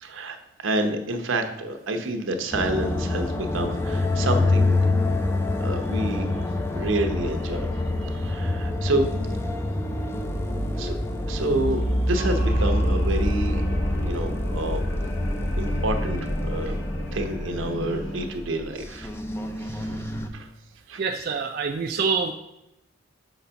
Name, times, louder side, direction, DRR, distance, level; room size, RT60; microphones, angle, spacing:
voice 1, 0.0-0.4 0.6-4.8 5.6-6.3 6.7-7.7 8.0-9.1 10.8-11.0 11.3-13.6 14.0-14.8 15.6-16.8 17.1-19.1 19.6-19.9 20.3-20.5 20.9-21.0, right 1 dB, 80° right, 5 dB, 0.8 m, -28 dB
sound 1, 2.5-20.3, left 1 dB, 10° left, 0.4 m, -26 dB
sound 2, 12.1-18.3, left 1 dB, 65° left, 1.1 m, -38 dB
voice 2, 21.0-22.3, right 5 dB, 50° right, 3 dB, 0.4 m, -26 dB
6.0 x 4.0 x 5.6 m, 0.86 s
head